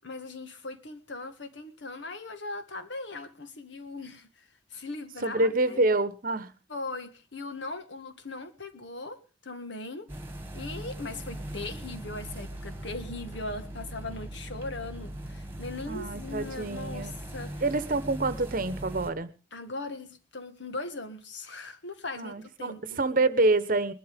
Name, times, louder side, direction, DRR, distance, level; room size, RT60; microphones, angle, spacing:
voice 1, 0.0-5.8 6.7-10.1 10.5-17.6 19.5-23.0, left 2 dB, 70° left, 9 dB, 1.7 m, -39 dB
voice 2, 5.2-6.5 15.9-17.1 17.6-19.3 22.2-23.9, right 2 dB, 45° right, 14 dB, 1.0 m, -27 dB
sound 1, 10.1-19.1, right 1 dB, 10° right, 1.9 m, -40 dB
21.0 x 12.0 x 3.6 m, 0.31 s
head